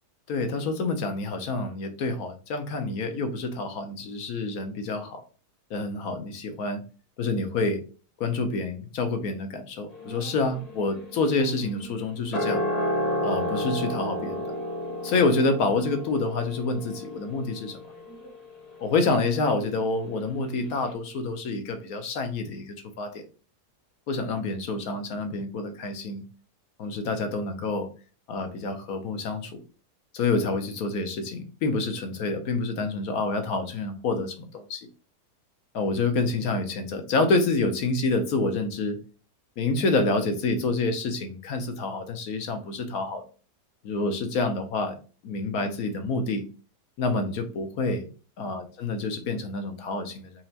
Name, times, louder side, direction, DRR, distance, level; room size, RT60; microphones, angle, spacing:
voice 1, 0.3-5.2 5.7-6.8 7.2-7.8 8.2-12.6 13.2-14.4 15.0-17.8 18.8-23.2 24.1-26.2 26.8-27.9 28.3-29.6 30.1-34.9 35.7-39.0 39.6-43.2 43.8-45.0 45.2-46.4 47.0-48.1 48.4-50.3, left 3 dB, 65° left, 6 dB, 1.2 m, -27 dB
sound 1, 9.9-20.3 20.6-20.7, equal, 30° left, 1.0 m, -33 dB
4.5 x 2.9 x 2.8 m, 0.35 s
omnidirectional pair, 1.8 m